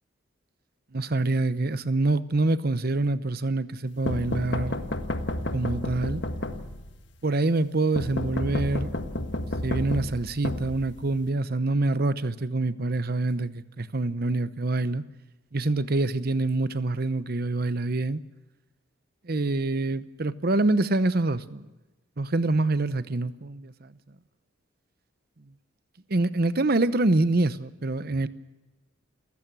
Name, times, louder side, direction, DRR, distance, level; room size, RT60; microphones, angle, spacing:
voice 1, 0.9-4.8 5.5-6.2 7.2-8.9 9.6-15.0 15.5-18.2 19.2-21.6 22.2-23.9 26.1-28.3, right 2 dB, 50° right, 0.8 m, -26 dB
sound 1, 4.1-7.0 8.0-11.3, left 1 dB, 60° left, 1.5 m, -31 dB
29.0 x 16.0 x 6.1 m
head